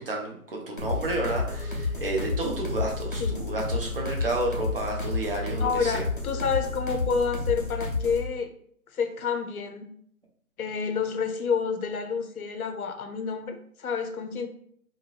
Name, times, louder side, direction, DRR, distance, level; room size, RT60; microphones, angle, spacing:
voice 1, 0.0-6.0, right 2 dB, 40° right, 0 dB, 0.6 m, -31 dB
sound 1, 0.8-8.3, left 3 dB, 35° left, 0.4 m, -31 dB
voice 2, 5.6-8.5 8.9-9.9 10.6-14.5, left 5 dB, 75° left, 6 dB, 0.7 m, -29 dB
3.7 x 2.5 x 2.4 m, 0.64 s
hypercardioid pair, 170°, 45 cm